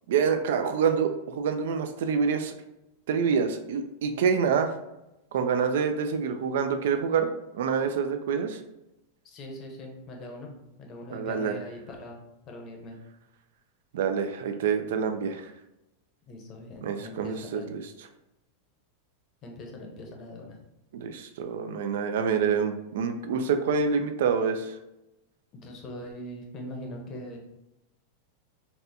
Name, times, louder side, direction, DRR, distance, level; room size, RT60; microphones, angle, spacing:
voice 1, 0.1-2.5 3.1-4.7 5.3-7.3 7.5-8.6 11.1-11.5 13.9-15.5 16.8-17.8 20.9-24.7, right 6 dB, 75° right, 7 dB, 0.4 m, -26 dB
voice 2, 9.2-12.9 16.3-17.7 19.4-20.6 25.5-27.4, left 1 dB, 30° left, 2 dB, 0.7 m, -41 dB
4.0 x 2.2 x 2.6 m, 0.92 s
supercardioid pair, 145°, 0 cm